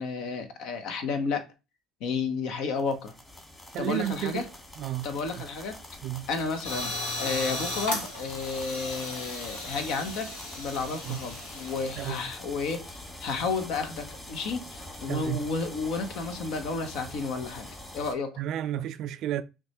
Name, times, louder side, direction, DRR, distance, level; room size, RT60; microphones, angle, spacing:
voice 1, 0.0-1.5 2.0-3.1 3.8-4.5 5.0-5.8 6.3-18.4, left 4 dB, 65° left, 0.8 m, -32 dB
sound 1, 2.8-18.1, left 1 dB, 20° left, 1.5 m, -44 dB
voice 2, 3.7-4.5 4.8-5.1 6.0-6.3 11.0-11.2 12.0-12.2 15.1-15.4 18.4-19.4, right 12 dB, 60° right, 0.4 m, -31 dB
sound 2, 6.6-12.1, left 2 dB, 80° left, 1.2 m, -36 dB
5.9 x 2.3 x 2.9 m
hypercardioid pair, 65°, 0 cm